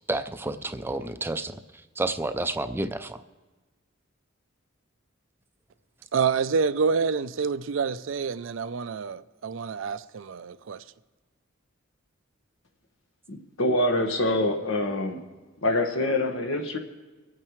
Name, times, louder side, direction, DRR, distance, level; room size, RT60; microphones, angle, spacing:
voice 1, 0.1-3.2, right 2 dB, 10° right, 0.4 m, -30 dB
voice 2, 6.1-10.8, right 5 dB, 70° right, 0.4 m, -27 dB
voice 3, 13.3-15.2 15.6-16.8, left 1 dB, 85° left, 1.4 m, -25 dB
24.5 x 8.9 x 3.1 m
head